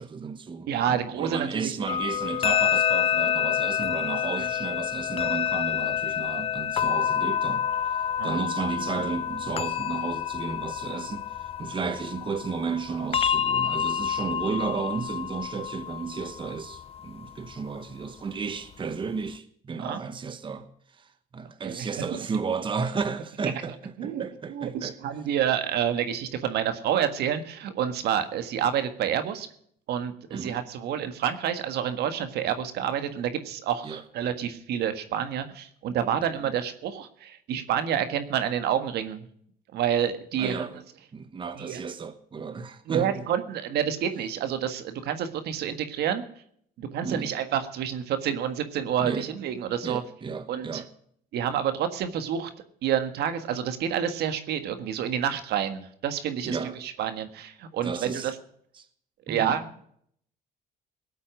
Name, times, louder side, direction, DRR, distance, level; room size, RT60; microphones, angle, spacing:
voice 1, 0.0-7.6 8.2-20.7 21.0-24.9 30.3-30.6 33.8-34.0 40.4-40.8 41.1-43.3 47.0-47.3 49.0-49.3 49.8-50.9 56.4-56.8 57.8-58.3 58.8-58.9 59.3-59.6, right 5 dB, 30° right, 1.2 m, -33 dB
voice 2, 0.7-1.9 4.4-4.5 8.2-8.4 19.8-20.0 21.6-21.9 24.0-29.5 29.9-39.3 39.7-40.6 41.5-41.8 42.9-46.2 46.8-50.0 50.5-50.8 51.3-52.5 52.8-58.4 59.3-59.7, right 9 dB, 75° right, 1.6 m, -28 dB
sound 1, 1.9-17.5, left 9 dB, 35° left, 0.6 m, -28 dB
18.5 x 8.4 x 6.3 m
cardioid pair, 110°, 17 cm